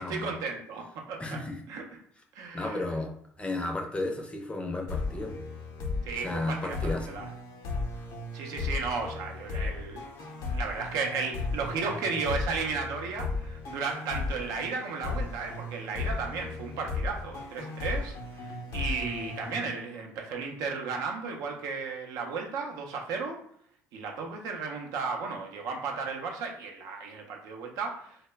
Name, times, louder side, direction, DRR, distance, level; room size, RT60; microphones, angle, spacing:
voice 1, 0.0-1.4 1.7-1.8 2.3-2.8 6.0-7.2 8.3-10.0 10.5-23.4 23.9-28.2, right 4 dB, 75° right, 1 dB, 0.5 m, -34 dB
voice 2, 1.2-1.6 2.5-3.1 3.4-5.3 6.1-7.2, left 2 dB, 20° left, 2 dB, 0.5 m, -33 dB
sound 1, 4.9-20.3, left 3 dB, 70° left, 0.6 m, -35 dB
2.0 x 2.0 x 3.3 m, 0.63 s
supercardioid pair, 80°, 6 cm